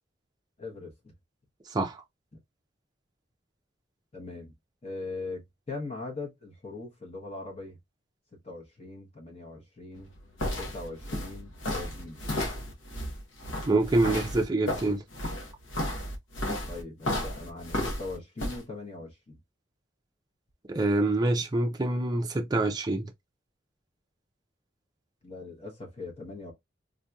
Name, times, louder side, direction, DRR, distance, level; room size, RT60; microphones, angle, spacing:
voice 1, 0.6-1.1 2.3-2.4 4.1-4.5 4.8-7.8 8.4-10.1 10.6-12.2 16.7-19.4 25.2-26.5, left 3 dB, 30° left, 0.8 m, -40 dB
voice 2, 1.7-2.0 13.7-15.0 20.7-23.1, right 2 dB, 20° right, 0.4 m, -26 dB
sound 1, 10.0-18.6, left 1 dB, 75° left, 1.0 m, -33 dB
3.6 x 2.8 x 2.2 m
head